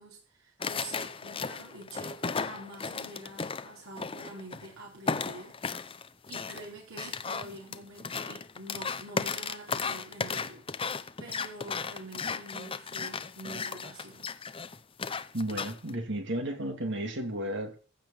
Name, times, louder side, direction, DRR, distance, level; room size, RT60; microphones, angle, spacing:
voice 1, 0.0-5.9 6.3-10.6 10.9-14.3, right 2 dB, 85° right, 4.5 m, -46 dB
sound 1, 0.6-4.7 5.1-15.9, left 5 dB, 25° left, 0.7 m, -35 dB
voice 2, 15.3-17.8, right 1 dB, 60° right, 2.7 m, -33 dB
15.5 x 5.2 x 8.7 m
head